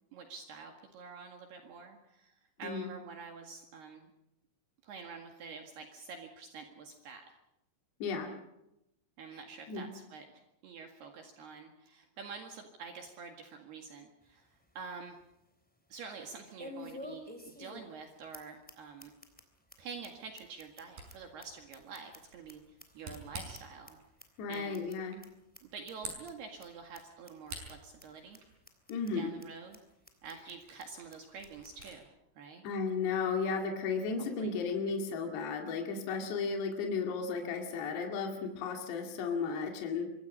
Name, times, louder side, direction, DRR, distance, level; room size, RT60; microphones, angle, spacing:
voice 1, 0.1-2.3 2.6-4.1 4.8-7.2 9.2-14.5 14.8-15.2 15.9-19.1 19.8-22.6 23.0-24.0 24.5-24.8 25.6-28.4 29.1-29.8 30.2-32.7 34.4-34.5, right 5 dB, 65° right, 3 dB, 3.7 m, -47 dB
voice 2, 2.6-2.9 8.0-8.3 9.7-9.9 24.4-25.2 28.9-29.3 32.6-40.1, left 5 dB, 65° left, 2 dB, 4.4 m, -34 dB
sound 1, 14.2-14.3 14.8-14.9 16.6-18.0 18.3-18.4 18.7-18.8 19.0-19.4 19.7-19.8 20.0-20.1 20.4-22.5 22.8-23.9 24.2-24.3 24.5-24.9 25.2-25.3 25.5-25.6 25.9-26.3 26.6-26.7 26.9-27.0 27.3-27.7 28.0-28.1 28.3-28.4 28.7-29.1 29.4-29.5 29.7-29.8 30.1-30.5 30.8-30.9 31.1-31.2 31.4-31.9, left 1 dB, 5° left, 2.2 m, -49 dB
Camera, 20.9-32.0, right 3 dB, 45° right, 7.3 m, -51 dB
26.0 x 24.0 x 5.6 m, 0.87 s
omnidirectional pair, 5.4 m